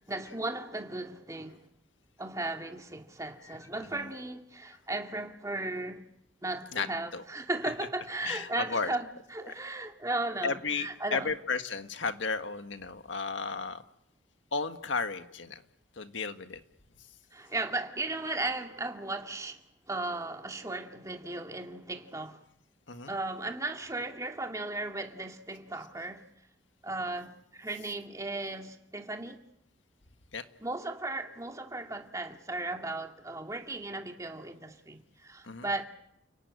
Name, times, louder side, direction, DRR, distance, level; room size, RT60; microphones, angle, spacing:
voice 1, 0.1-1.6 2.2-6.0 6.4-9.0 9.3-11.3 17.3-19.6 19.9-22.4 23.1-26.2 26.8-29.4 30.6-35.9, right 2 dB, 15° right, 2.3 m, -36 dB
voice 2, 3.8-4.1 6.7-6.9 7.1-7.2 8.2-8.9 10.4-13.8 14.5-15.6 16.0-16.6 22.9-23.1 30.3-30.4 35.4-35.7, left 4 dB, 85° left, 1.7 m, -34 dB
30.0 x 17.5 x 9.6 m
head